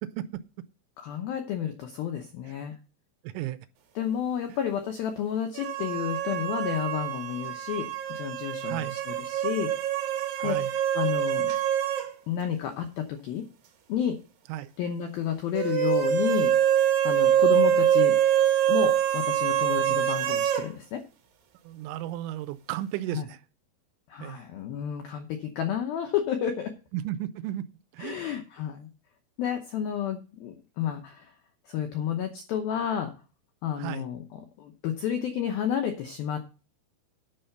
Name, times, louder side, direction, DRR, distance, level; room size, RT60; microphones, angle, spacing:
voice 1, 0.0-0.4 3.2-3.6 8.6-9.0 10.4-10.7 14.5-14.7 19.9-20.0 21.6-23.4 24.2-24.4 26.9-27.7 27.9-28.2 33.8-34.1, right 13 dB, 80° right, 2.9 m, -34 dB
voice 2, 1.0-2.8 4.0-9.7 10.4-10.6 10.9-11.5 12.3-13.4 13.9-14.2 14.8-16.5 17.0-18.2 18.7-21.0 23.1-23.3 24.1-26.7 28.0-28.9 29.4-31.3 31.7-33.1 33.6-36.4, left 9 dB, 80° left, 2.1 m, -31 dB
sound 1, 5.6-12.1 12.4-12.5 15.6-20.7, right 10 dB, 60° right, 2.6 m, -25 dB
10.5 x 5.7 x 6.6 m
omnidirectional pair, 5.6 m